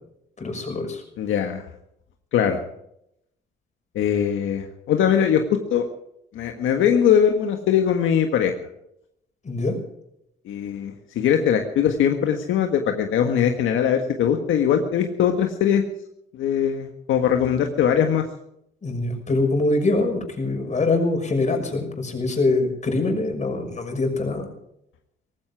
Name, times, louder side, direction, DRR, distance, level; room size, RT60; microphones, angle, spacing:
voice 1, 0.4-1.0 9.4-9.7 18.8-24.5, left 2 dB, 35° left, 4 dB, 6.0 m, -24 dB
voice 2, 1.2-1.6 2.3-2.6 3.9-5.8 6.3-8.5 10.4-15.8 16.3-18.2, left 8 dB, 80° left, 4 dB, 1.7 m, -21 dB
18.5 x 16.0 x 4.8 m, 0.77 s
cardioid pair, 90°, 20 cm